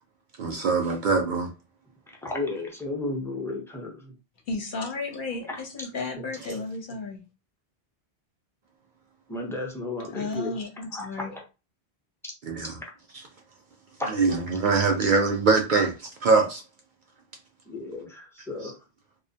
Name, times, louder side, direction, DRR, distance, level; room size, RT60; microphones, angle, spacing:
voice 1, 0.4-1.5 12.4-12.8 14.0-16.6 18.6-18.7, right 4 dB, 60° right, 0.6 m, -23 dB
voice 2, 2.2-4.1 5.5-5.6 6.2-6.6 9.3-10.6 10.9-11.4 12.2-12.3 14.0-14.1 17.7-18.8, left 2 dB, 5° left, 0.4 m, -33 dB
voice 3, 4.5-7.2 10.1-11.3, left 3 dB, 60° left, 0.7 m, -33 dB
2.5 x 2.1 x 2.7 m
omnidirectional pair, 1.1 m